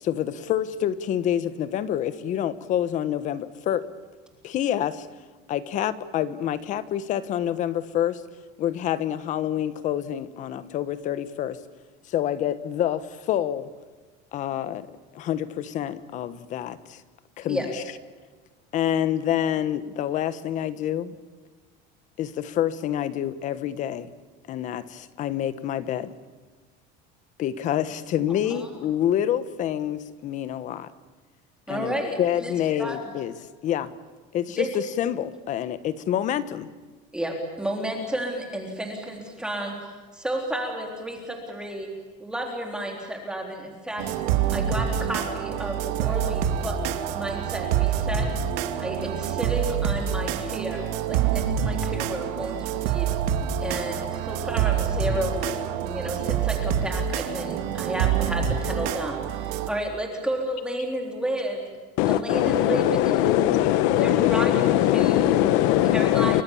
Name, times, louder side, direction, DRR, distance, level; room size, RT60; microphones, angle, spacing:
voice 1, 0.0-3.9 4.4-5.1 5.5-8.2 8.6-11.6 12.1-13.7 14.3-14.9 15.1-17.0 17.4-17.8 18.7-21.1 22.2-24.1 24.5-26.1 27.4-30.9 31.7-33.3 33.6-33.9 34.3-36.7, left 10 dB, 40° left, 14 dB, 1.3 m, -27 dB
voice 2, 31.7-32.5 32.8-33.0 34.6-34.7 37.1-39.8 40.1-41.9 42.2-44.1 44.5-46.8 47.1-48.3 48.8-53.1 53.6-55.6 55.9-61.7 62.1-63.4 64.0-65.4 65.9-66.4, right 1 dB, 5° right, 1 dB, 3.6 m, -31 dB
sound 1, 44.0-59.7, right 9 dB, 90° right, 2.6 m, -26 dB
voice 3, 62.0-66.4, left 13 dB, 75° left, 13 dB, 1.3 m, -20 dB
29.5 x 24.5 x 7.2 m, 1.4 s
cardioid pair, 170°, 20 cm